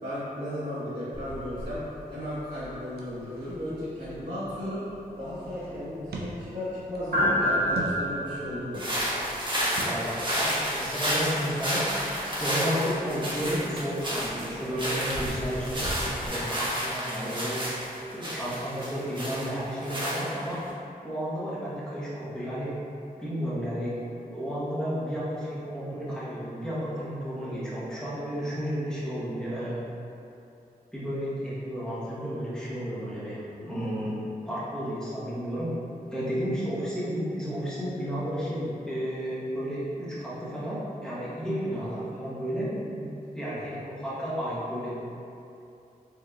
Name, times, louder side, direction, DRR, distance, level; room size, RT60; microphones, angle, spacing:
voice 1, 0.0-1.8 2.1-4.8 5.2-8.8 33.6-34.1 41.8-42.0 43.7-43.8, left 1 dB, 60° right, -16 dB, 1.4 m, -35 dB
sound 1, 1.1-16.3, equal, 75° right, 0.9 m, -35 dB
sound 2, 3.0-4.4 5.1-6.5 6.9-8.2 8.7-9.8, right 2 dB, 90° right, 0.5 m, -41 dB
sound 3, 8.7-20.7, equal, 30° right, 1.0 m, -31 dB
voice 2, 9.8-11.8 12.4-15.9 16.3-17.8 18.1-20.6 21.0-22.7 23.2-29.8 30.9-34.1 34.4-35.7 36.1-43.1 43.3-44.9, equal, 5° left, -10 dB, 1.1 m, -32 dB
4.7 x 3.1 x 2.4 m, 2.7 s
wide cardioid pair, 85°, 16 cm